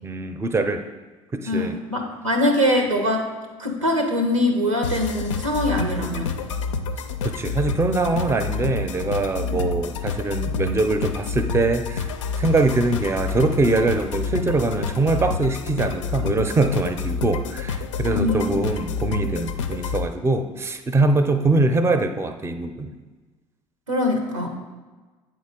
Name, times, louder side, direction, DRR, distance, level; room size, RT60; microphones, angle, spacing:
voice 1, 0.0-0.8 1.3-1.8 7.2-12.1 12.4-22.9, right 2 dB, 15° right, 8 dB, 0.5 m, -23 dB
voice 2, 1.5-3.3 3.6-6.4 9.4-9.6 18.0-18.5 23.9-24.5, left 1 dB, 90° right, 4 dB, 0.8 m, -23 dB
sound 1, 4.8-20.1, left 4 dB, 75° left, 0.4 m, -28 dB
8.1 x 3.8 x 3.7 m, 1.3 s
figure-of-eight pair, 60°, 16 cm